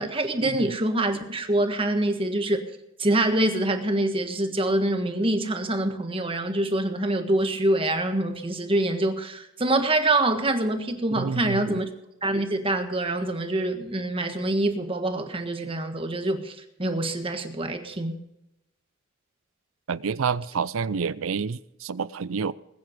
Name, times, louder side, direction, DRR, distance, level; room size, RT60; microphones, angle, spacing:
voice 1, 0.0-2.6 3.0-11.8 12.2-18.2, right 1 dB, 25° right, 1.5 m, -25 dB
voice 2, 11.1-11.8 19.9-22.5, right 5 dB, 85° right, 0.5 m, -29 dB
20.5 x 9.4 x 5.1 m
head